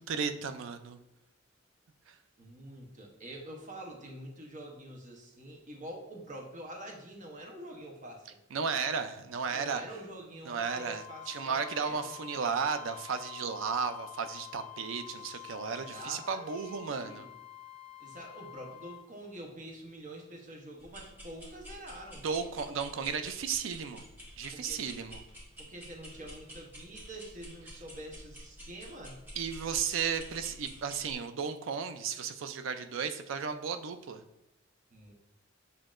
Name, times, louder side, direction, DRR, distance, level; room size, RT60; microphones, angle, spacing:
voice 1, 0.1-1.0 2.1-2.2 8.5-9.8 10.4-17.3 22.2-24.0 24.4-25.2 29.4-34.2, right 6 dB, 80° right, 9 dB, 0.4 m, -34 dB
voice 2, 2.4-8.3 9.5-12.1 14.9-17.3 18.0-22.2 24.5-25.1 25.6-29.2 34.9-35.1, right 1 dB, 40° right, 0 dB, 1.0 m, -46 dB
Wind instrument woodwind instrument, 10.5-19.1, left 16 dB, 10° left, 0.5 m, -48 dB
sound 1, 20.8-31.1, equal, 10° right, 1.1 m, -50 dB
7.3 x 2.8 x 2.5 m, 0.88 s
head